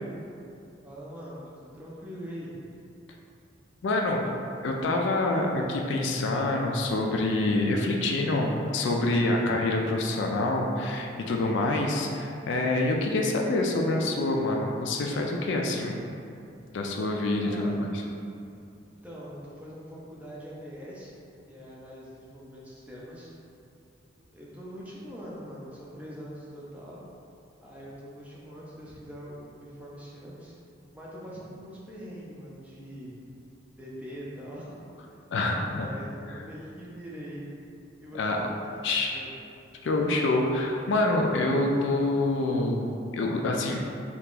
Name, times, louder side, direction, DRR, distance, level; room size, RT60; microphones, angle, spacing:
voice 1, 0.8-2.7 17.4-17.8 18.9-21.1 21.5-23.3 24.3-27.1 27.6-30.5 30.9-33.2 33.8-35.2 35.8-37.6 38.0-38.7 39.0-39.3, equal, 5° right, -7 dB, 0.5 m, -43 dB
voice 2, 3.8-4.3 4.6-16.0 16.7-17.9 35.3-35.9 38.1-38.4 38.8-39.1 39.8-42.9 43.1-43.8, left 2 dB, 65° left, 1 dB, 0.3 m, -26 dB
2.8 x 2.4 x 3.7 m, 2.6 s
head